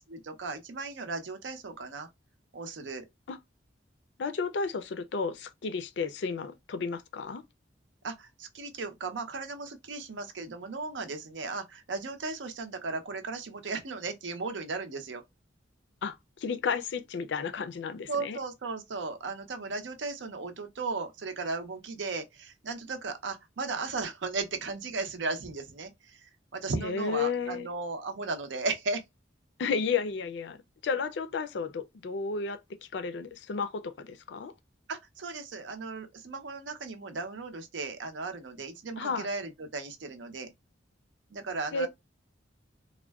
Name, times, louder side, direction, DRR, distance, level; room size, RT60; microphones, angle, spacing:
voice 1, 0.1-2.1 2.5-3.0 8.0-15.2 18.1-26.2 26.5-29.0 34.9-40.5 41.3-41.9, right 3 dB, 80° right, 0.6 m, -36 dB
voice 2, 4.2-7.4 16.0-18.4 26.8-27.7 29.6-30.6 30.8-32.6 32.9-34.5 39.0-39.3 41.7-41.9, left 5 dB, 70° left, 0.4 m, -32 dB
3.5 x 2.1 x 2.2 m
head